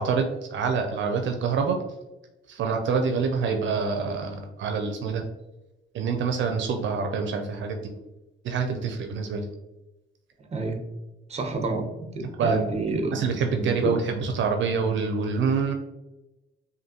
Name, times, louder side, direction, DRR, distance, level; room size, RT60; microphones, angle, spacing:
voice 1, 0.0-1.8 2.5-5.3 5.9-7.9 8.4-9.4 12.4-12.6 13.1-15.7, right 5 dB, 70° right, 4 dB, 0.6 m, -26 dB
voice 2, 11.3-11.8 12.1-13.2 13.6-13.9, right 2 dB, 30° right, 5 dB, 0.8 m, -28 dB
5.1 x 2.7 x 2.9 m, 1.0 s
cardioid pair, 90°, 20 cm